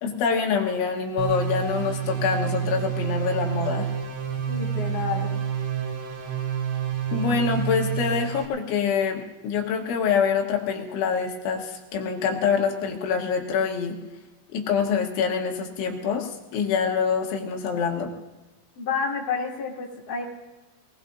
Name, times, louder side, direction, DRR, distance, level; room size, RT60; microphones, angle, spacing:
voice 1, 0.0-3.9 7.1-14.0 14.5-18.1, left 6 dB, 80° left, 2 dB, 3.7 m, -25 dB
sound 1, 1.2-8.5, right 8 dB, 80° right, 4.2 m, -28 dB
voice 2, 4.5-5.3 18.8-20.2, left 5 dB, 25° left, -4 dB, 2.6 m, -29 dB
23.5 x 19.5 x 2.7 m, 1.1 s
omnidirectional pair, 5.4 m